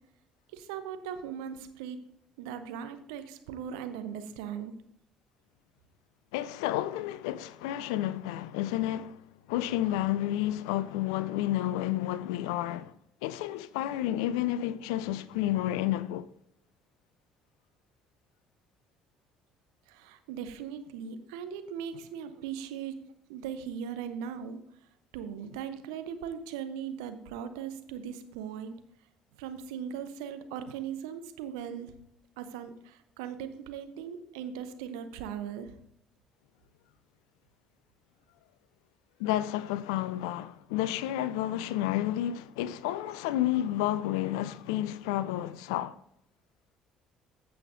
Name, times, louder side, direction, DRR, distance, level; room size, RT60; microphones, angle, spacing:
voice 1, 0.5-2.0 2.4-4.7 19.9-23.0 23.3-24.6 25.1-28.8 29.4-31.9 32.4-35.7, right 8 dB, 70° right, 0.8 m, -39 dB
voice 2, 6.3-9.2 9.5-12.9 13.2-16.3 39.2-46.0, left 13 dB, 70° left, 0.4 m, -30 dB
15.0 x 5.7 x 2.7 m
figure-of-eight pair, 50°, 3 cm